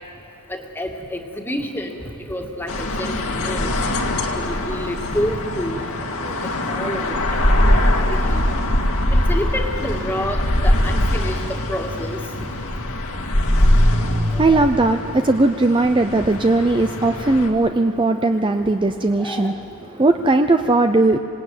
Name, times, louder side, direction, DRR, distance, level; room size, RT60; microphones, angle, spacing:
voice 1, 0.5-2.0 2.3-3.7 4.4-5.8 6.1-6.3 6.7-7.1 7.9-8.5 9.1-11.4 11.7-12.5 14.3-14.4 16.2-16.3 18.6-18.7 19.2-19.6, equal, 10° left, 2 dB, 2.0 m, -28 dB
sound 1, 2.7-17.5, left 1 dB, 75° left, 2.2 m, -21 dB
voice 2, 13.9-19.6 19.8-21.2, right 2 dB, 20° right, 6 dB, 0.6 m, -18 dB
26.5 x 19.0 x 9.2 m, 2.8 s
head